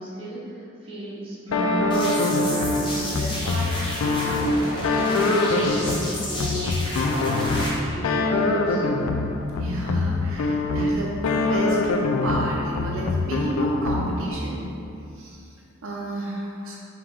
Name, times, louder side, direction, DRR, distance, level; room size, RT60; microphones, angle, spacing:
voice 1, 0.0-8.9, equal, 25° right, -9 dB, 1.0 m, -35 dB
sound 1, 1.5-14.4, left 2 dB, 85° left, 0.3 m, -24 dB
voice 2, 1.5-1.8 5.8-5.9 9.6-11.1 11.4-11.8 12.2-14.6 15.1-16.8, right 1 dB, 70° right, -4 dB, 0.6 m, -32 dB
sound 2, 1.9-7.7, left 1 dB, 20° left, 0.7 m, -32 dB
5.0 x 2.9 x 3.6 m, 2.6 s
head